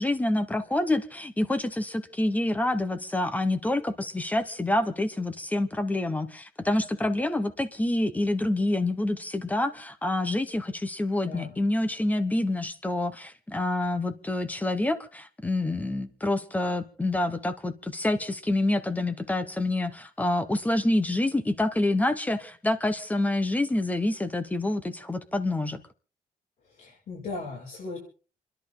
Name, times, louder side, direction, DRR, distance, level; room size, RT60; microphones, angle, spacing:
voice 1, 0.0-25.8, left 1 dB, 10° left, 11 dB, 1.1 m, -27 dB
voice 2, 11.2-11.6 26.7-28.0, left 3 dB, 75° left, -5 dB, 6.0 m, -37 dB
29.5 x 11.0 x 3.9 m, 0.39 s
wide cardioid pair, 160°, 14 cm